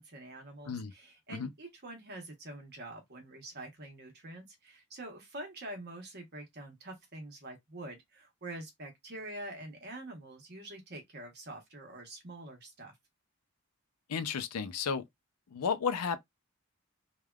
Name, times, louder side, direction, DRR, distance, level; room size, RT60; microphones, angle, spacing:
voice 1, 0.0-12.9, right 1 dB, 45° right, 1.0 m, -46 dB
voice 2, 14.1-15.0 15.5-16.2, left 6 dB, 90° left, 0.5 m, -33 dB
3.4 x 2.2 x 2.3 m
head